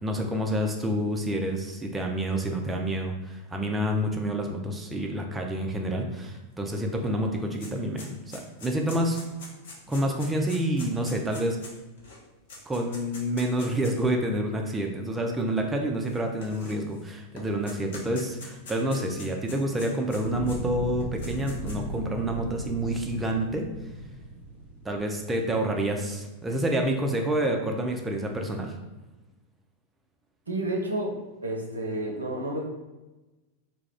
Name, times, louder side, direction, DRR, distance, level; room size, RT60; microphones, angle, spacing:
voice 1, 0.0-9.2 9.9-11.6 12.7-23.7 24.8-28.7, right 1 dB, 10° right, 2 dB, 0.3 m, -28 dB
sound 1, 6.8-6.9 7.1-14.1 14.8-14.9 16.0-17.0 17.4-20.6 21.0-21.9, left 2 dB, 60° left, 0.6 m, -44 dB
Fire, 20.1-25.2, right 1 dB, 90° left, 0.9 m, -36 dB
voice 2, 30.5-32.6, right 1 dB, 75° right, 0 dB, 0.5 m, -30 dB
2.3 x 2.0 x 3.4 m, 1.1 s
figure-of-eight pair, 90°, 0 cm